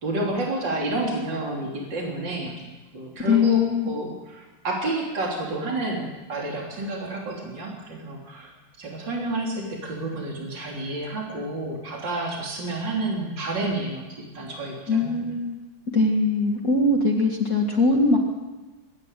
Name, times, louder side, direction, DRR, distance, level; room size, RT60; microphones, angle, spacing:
voice 1, 0.0-2.6 2.9-8.5 8.8-15.2, right 2 dB, 60° right, -2 dB, 3.9 m, -30 dB
voice 2, 3.3-3.9 14.9-15.6 15.9-18.2, left 3 dB, 45° left, 0 dB, 2.4 m, -21 dB
25.5 x 11.0 x 9.9 m, 1.2 s
omnidirectional pair, 2.2 m